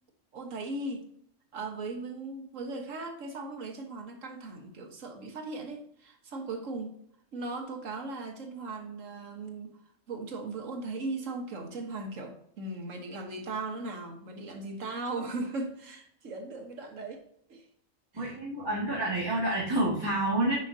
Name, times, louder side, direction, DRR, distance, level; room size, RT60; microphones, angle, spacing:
voice 1, 0.3-1.1 1.5-7.0 7.3-9.8 10.1-17.2 17.5-17.6 18.1-18.4, right 3 dB, 90° right, 4 dB, 1.6 m, -38 dB
voice 2, 18.1-20.5, right 1 dB, 20° right, -8 dB, 1.8 m, -28 dB
9.6 x 5.6 x 2.7 m, 0.66 s
omnidirectional pair, 1.3 m